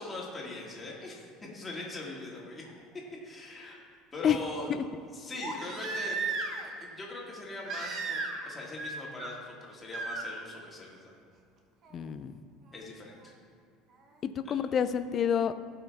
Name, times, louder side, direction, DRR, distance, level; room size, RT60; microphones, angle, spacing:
voice 1, 0.0-2.6 3.2-3.8 4.1-4.7 5.1-6.4 6.8-11.1 12.7-13.3 14.4-14.6, left 2 dB, 15° left, -3 dB, 2.0 m, -41 dB
Crying sobbing, 2.7-2.8 5.4-6.7 7.7-8.5 8.8-9.3 9.9-10.2 11.9-12.0, right 4 dB, 40° right, 1.1 m, -35 dB
voice 2, 11.9-12.4 14.2-15.6, left 8 dB, 35° left, 12 dB, 0.4 m, -28 dB
16.0 x 5.7 x 3.5 m, 2.2 s
cardioid pair, 140°, 0 cm